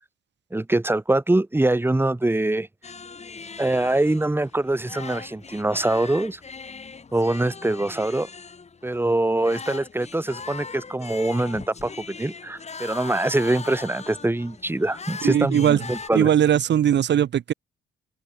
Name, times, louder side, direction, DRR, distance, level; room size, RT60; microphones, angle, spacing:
voice 1, 0.5-2.7 3.6-6.4 7.1-8.3 8.8-16.3, right 2 dB, 10° right, 3.6 m, -24 dB
sound 1, 2.8-16.1, left 5 dB, 35° left, 5.3 m, -40 dB
voice 2, 15.2-15.8 16.1-17.5, right 10 dB, 65° right, 2.7 m, -19 dB
open air
cardioid pair, 90°, 20 cm